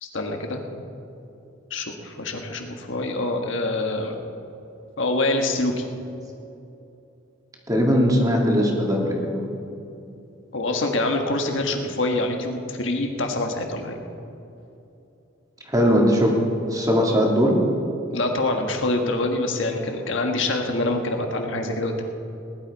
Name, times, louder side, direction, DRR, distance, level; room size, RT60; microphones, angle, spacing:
voice 1, 0.0-0.6 1.7-4.2 5.0-5.8 10.5-14.0 18.1-22.0, left 2 dB, 65° left, 3 dB, 1.5 m, -25 dB
voice 2, 7.7-9.5 15.7-16.3 16.7-17.6, equal, 20° right, 0 dB, 2.2 m, -19 dB
19.5 x 11.5 x 4.7 m, 2.8 s
head